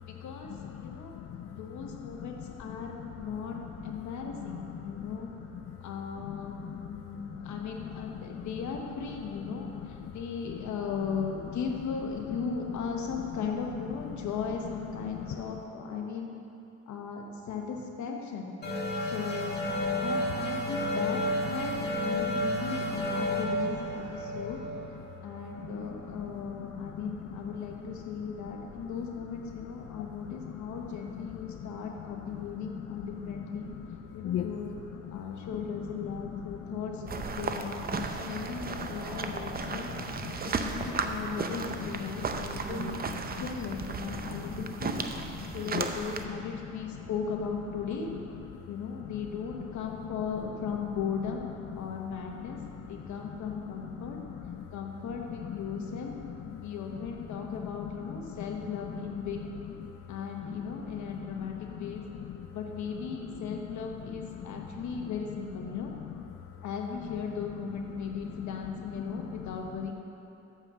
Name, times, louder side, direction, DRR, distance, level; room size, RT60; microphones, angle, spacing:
voice 1, 0.1-3.6 3.8-5.3 5.8-16.3 16.9-18.5 19.0-21.7 22.0-24.6 25.2-33.7 34.1-34.8 35.1-39.9 40.4-43.0 43.4-45.0 45.5-48.1 48.7-51.4 51.8-54.2 54.7-56.1 56.6-59.4 60.1-62.0 62.5-65.9 66.6-69.9, left 6 dB, 70° left, 2 dB, 1.2 m, -37 dB
voice 2, 0.6-2.3 2.7-3.1 3.5-3.6 5.0-5.1 5.7-5.8 6.2-7.5 8.3-8.4 9.5-10.1 10.5-10.6 15.2-15.4 25.6-27.5 30.4-30.5 30.9-31.2 31.5-31.6 32.3-32.4 33.2-34.0 34.2-34.5 35.0-35.2 35.7-35.8 36.3-36.8 38.0-38.2 38.6-38.7 39.1-40.4 41.2-41.3 42.3-42.4 42.8-43.5 44.2-44.4 45.4-45.9 52.3-52.7 54.0-54.1 54.3-54.6 55.8-55.9 56.3-56.6 57.4-57.5 57.8-58.2 60.4-60.8 61.1-61.9 62.3-62.4 63.5-63.6 64.5-64.6 69.1-69.2, left 10 dB, 50° left, 5 dB, 0.4 m, -41 dB
sound 1, 18.6-25.9, equal, 35° left, 1.6 m, -31 dB
sound 2, 37.1-46.3, right 5 dB, 30° right, 0.6 m, -35 dB
7.0 x 5.6 x 7.2 m, 3.0 s
cardioid pair, 90°, 30 cm